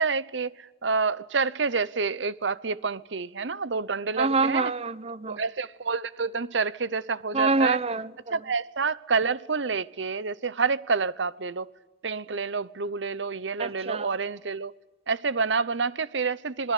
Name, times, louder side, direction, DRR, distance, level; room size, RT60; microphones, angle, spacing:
voice 1, 0.0-4.7 5.3-7.8 8.3-11.7 12.0-14.7 15.1-16.7, right 4 dB, 85° right, 0.9 m, -28 dB
voice 2, 4.2-5.4 7.3-8.3 13.6-14.1, right 3 dB, 35° right, 0.9 m, -26 dB
27.0 x 21.5 x 8.4 m
head